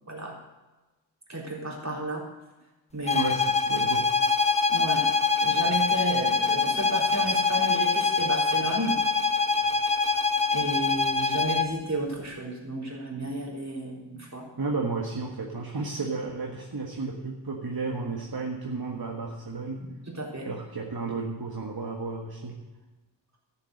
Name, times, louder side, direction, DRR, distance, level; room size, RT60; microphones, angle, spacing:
voice 1, 1.3-2.2 2.9-3.3 4.7-5.1 5.4-8.9 10.5-14.5 20.1-20.5, right 1 dB, 35° right, -3 dB, 3.9 m, -32 dB
sound 1, 3.1-11.8, left 4 dB, 15° left, 0.9 m, -24 dB
voice 2, 3.1-4.2 9.6-9.8 14.6-19.9 20.4-22.6, right 3 dB, 55° right, 0 dB, 1.6 m, -33 dB
12.5 x 7.5 x 7.9 m, 1.1 s
wide cardioid pair, 60°, 45 cm